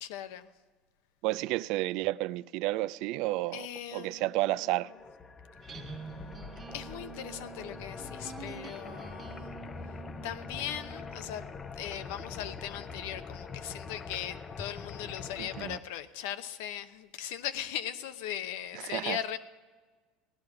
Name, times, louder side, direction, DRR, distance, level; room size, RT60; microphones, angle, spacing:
voice 1, 0.0-0.5 3.5-4.3 5.8-5.9 6.7-9.5 10.2-11.4 11.8-19.4, left 10 dB, 80° left, 0.8 m, -39 dB
voice 2, 1.2-3.7 3.9-4.9 15.4-15.8 18.8-19.2, right 18 dB, 70° right, 0.3 m, -31 dB
sound 1, 4.2-15.8, left 4 dB, 30° left, 0.6 m, -44 dB
sound 2, 5.6-11.5, right 6 dB, 30° right, 1.6 m, -47 dB
16.5 x 11.5 x 4.8 m
supercardioid pair, 115°, 0 cm